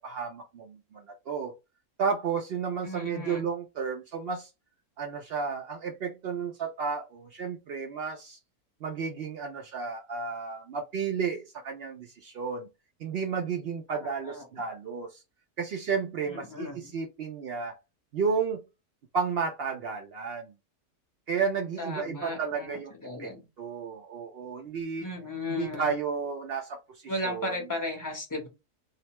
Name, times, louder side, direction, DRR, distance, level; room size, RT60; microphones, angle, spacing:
voice 1, 0.0-1.6 2.0-4.5 5.0-8.4 8.8-12.7 13.0-15.2 15.6-17.8 18.1-18.6 19.1-20.5 21.3-22.9 23.2-23.3 23.6-25.1 25.5-27.6, right 5 dB, 80° right, 0.5 m, -32 dB
voice 2, 2.8-3.5 13.9-14.5 16.3-16.9 21.8-23.5 25.0-25.9 27.1-28.5, left 2 dB, 15° left, 0.7 m, -36 dB
2.7 x 2.1 x 2.9 m
omnidirectional pair, 1.6 m